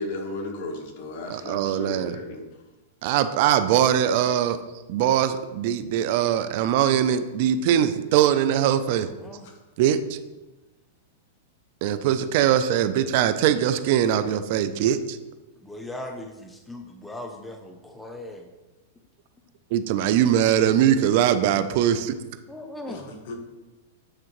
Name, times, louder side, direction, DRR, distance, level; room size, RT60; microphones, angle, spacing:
voice 1, 0.0-2.5 9.4-9.6 22.9-23.4, left 2 dB, 55° left, 3 dB, 1.2 m, -35 dB
voice 2, 1.3-2.2 3.0-4.6 4.9-9.1 9.8-10.2 11.8-15.2 19.7-22.1, right 10 dB, 55° right, 11 dB, 0.4 m, -21 dB
voice 3, 8.8-9.5 15.6-18.5 20.0-20.1 22.5-23.1, left 1 dB, 5° left, 4 dB, 0.5 m, -39 dB
8.5 x 3.7 x 3.0 m, 1.1 s
hypercardioid pair, 135°, 0 cm